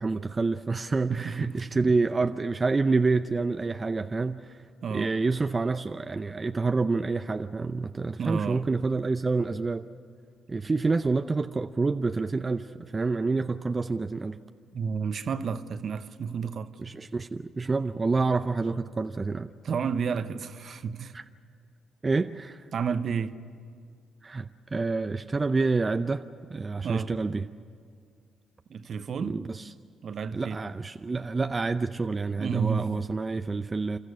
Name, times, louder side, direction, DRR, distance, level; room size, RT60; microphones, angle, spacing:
voice 1, 0.0-4.6 4.9-9.9 10.5-14.4 16.8-19.5 21.1-21.2 22.0-22.6 24.2-27.5 29.2-29.7 30.3-34.0, right 3 dB, 30° right, 0.6 m, -28 dB
voice 2, 1.1-1.5 4.8-5.1 8.2-8.6 14.7-16.7 19.6-21.1 22.7-23.3 26.8-27.1 28.7-29.4 30.0-30.6 32.4-32.9, right 6 dB, 55° right, 1.0 m, -31 dB
28.0 x 13.5 x 9.7 m
hypercardioid pair, 55°, 0 cm